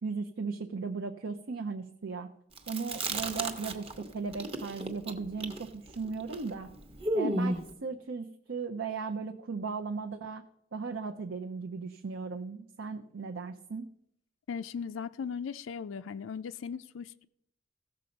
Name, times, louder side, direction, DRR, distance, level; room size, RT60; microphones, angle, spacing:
voice 1, 0.0-2.3 2.7-6.7 7.1-10.4 10.7-13.9, right 4 dB, 75° right, 5 dB, 0.6 m, -37 dB
Chewing mastication, 2.6-4.0 4.3-7.7, right 1 dB, 30° right, 0.9 m, -33 dB
voice 2, 14.5-17.2, left 6 dB, 90° left, 10 dB, 0.4 m, -38 dB
16.0 x 6.8 x 5.2 m, 0.76 s
head